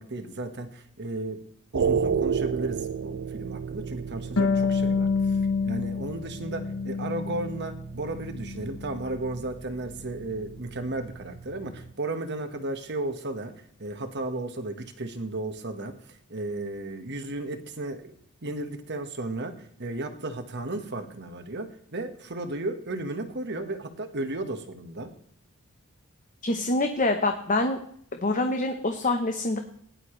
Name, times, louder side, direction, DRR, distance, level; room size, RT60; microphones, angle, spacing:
voice 1, 0.0-1.5 1.7-5.4 5.6-18.1 18.4-25.1, right 2 dB, 50° right, 7 dB, 1.5 m, -34 dB
sound 1, 1.7-11.9, right 6 dB, 70° right, 0.5 m, -33 dB
Harp, 4.4-7.7 8.1-9.2, left 4 dB, 65° left, 0.7 m, -28 dB
voice 2, 26.4-27.8 28.2-29.6, left 2 dB, 35° left, 5 dB, 1.0 m, -25 dB
18.0 x 11.0 x 3.2 m, 0.65 s
head